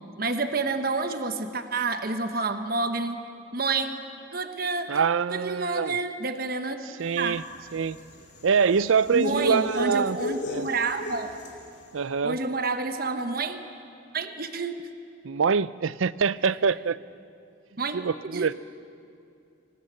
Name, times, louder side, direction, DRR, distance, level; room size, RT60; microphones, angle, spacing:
voice 1, 0.2-3.2 3.5-4.0 4.3-6.8 7.1-7.4 9.1-11.3 12.2-13.6 14.1-14.9 17.8-18.0 18.3-18.5, right 3 dB, 45° right, 8 dB, 1.1 m, -29 dB
voice 2, 4.9-5.9 7.0-7.4 7.7-8.0 8.4-10.2 10.5-10.7 11.9-12.4 15.2-17.0 17.9-18.5, right 6 dB, 80° right, 18 dB, 0.5 m, -24 dB
sound 1, 7.1-11.7, left 1 dB, 55° left, 3.0 m, -34 dB
25.5 x 19.5 x 7.7 m, 2.5 s
head